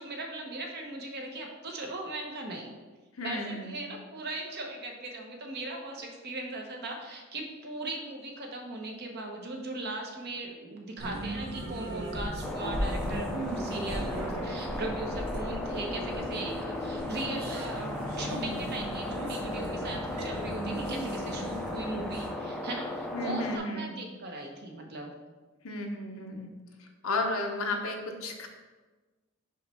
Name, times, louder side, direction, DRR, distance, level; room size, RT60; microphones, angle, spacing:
voice 1, 0.0-2.7 3.2-25.1, right 2 dB, 50° right, 1 dB, 0.9 m, -38 dB
voice 2, 3.2-3.7 23.1-23.9 25.6-26.5 27.0-28.5, left 2 dB, 70° left, 3 dB, 0.8 m, -33 dB
sound 1, 11.0-22.3, right 1 dB, 85° right, 1.0 m, -36 dB
sound 2, 12.4-23.6, left 2 dB, ahead, 0.5 m, -37 dB
5.7 x 3.1 x 5.5 m, 1.3 s
head